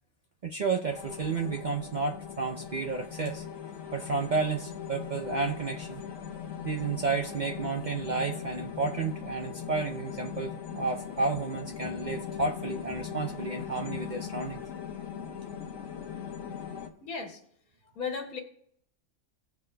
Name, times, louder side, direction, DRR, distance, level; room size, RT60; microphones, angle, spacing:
voice 1, 0.4-3.4 3.9-6.0 6.6-14.6, right 4 dB, 60° right, 3 dB, 0.5 m, -31 dB
sound 1, 0.9-16.9, left 8 dB, 70° left, 1.4 m, -40 dB
voice 2, 17.0-17.4 18.0-18.4, left 5 dB, 85° left, 2 dB, 1.7 m, -35 dB
18.0 x 6.9 x 2.2 m, 0.68 s
omnidirectional pair, 1.5 m